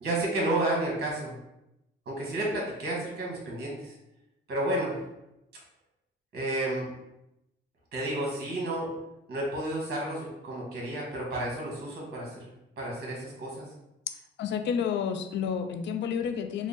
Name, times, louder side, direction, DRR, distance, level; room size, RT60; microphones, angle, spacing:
voice 1, 0.0-1.3 2.1-4.0 4.5-5.0 6.3-6.9 7.9-8.9 9.3-12.5 12.8-13.6, right 1 dB, 55° right, -2 dB, 1.3 m, -31 dB
voice 2, 14.4-16.7, left 7 dB, 65° left, 7 dB, 0.4 m, -30 dB
3.7 x 2.1 x 3.7 m, 0.88 s
cardioid pair, 90°, 20 cm